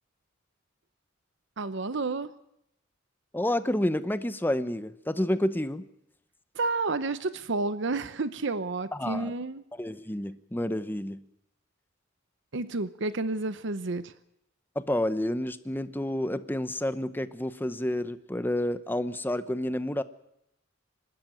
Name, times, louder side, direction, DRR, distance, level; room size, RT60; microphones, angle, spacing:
voice 1, 1.6-2.3 6.5-9.6 12.5-14.1, right 3 dB, 65° right, 14 dB, 0.8 m, -30 dB
voice 2, 3.3-5.9 8.9-9.3 9.8-11.2 14.7-20.0, left 1 dB, 10° left, 13 dB, 0.9 m, -29 dB
26.0 x 13.0 x 9.1 m, 0.80 s
head